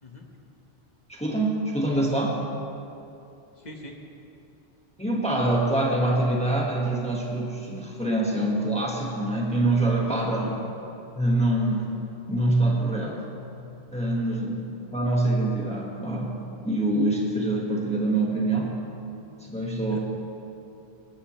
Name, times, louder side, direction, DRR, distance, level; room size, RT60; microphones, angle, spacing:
voice 1, 1.1-2.4 5.0-10.6 11.1-13.2 13.9-14.6 14.9-18.8 19.4-20.0, right 1 dB, 5° left, -3 dB, 1.5 m, -25 dB
voice 2, 3.6-4.0 10.2-10.5 14.1-14.4 19.9-20.0, left 1 dB, 40° left, 1 dB, 1.4 m, -44 dB
19.0 x 14.5 x 3.2 m, 2.8 s
omnidirectional pair, 1.1 m